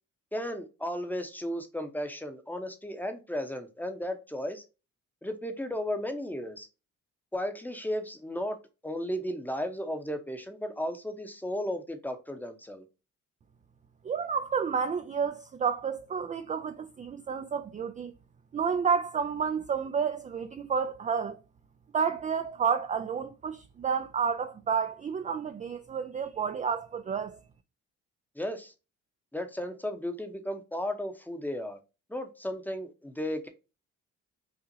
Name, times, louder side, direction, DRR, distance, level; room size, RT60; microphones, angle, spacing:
voice 1, 0.3-4.6 5.2-6.7 7.3-8.6 8.8-12.8 28.3-28.7 29.3-31.8 32.1-33.5, equal, 5° left, 0.8 m, -34 dB
voice 2, 14.0-18.1 18.5-21.4 21.9-27.4, right 6 dB, 25° right, 0.3 m, -30 dB
5.6 x 2.4 x 2.7 m
cardioid pair, 90°, 30 cm